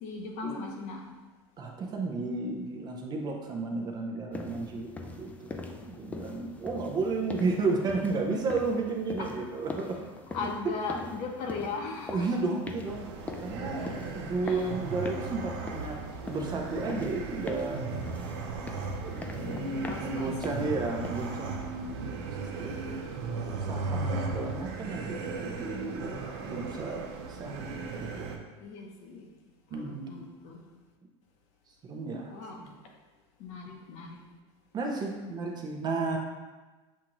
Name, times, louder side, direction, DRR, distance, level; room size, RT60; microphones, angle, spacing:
voice 1, 0.0-1.1 9.2-9.4 10.3-12.3 13.8-13.9 14.4-14.7 19.3-20.3 28.6-29.3 29.7-30.6 32.3-32.7 33.4-34.2, left 4 dB, 50° left, 2 dB, 0.8 m, -38 dB
voice 2, 1.6-5.6 5.8-10.0 10.3-10.5 10.9-11.0 12.1-13.0 13.4-17.8 19.0-23.1 23.6-27.0 27.3-28.3 29.7-30.2 31.7-32.3 32.6-32.7 34.7-36.2, right 3 dB, 30° right, 1 dB, 0.6 m, -33 dB
sound 1, 4.3-21.6, left 3 dB, 10° left, 0.3 m, -43 dB
sound 2, 12.9-28.4, right 4 dB, 80° right, 0.6 m, -37 dB
7.2 x 2.5 x 2.9 m, 1.2 s
supercardioid pair, 130°, 14 cm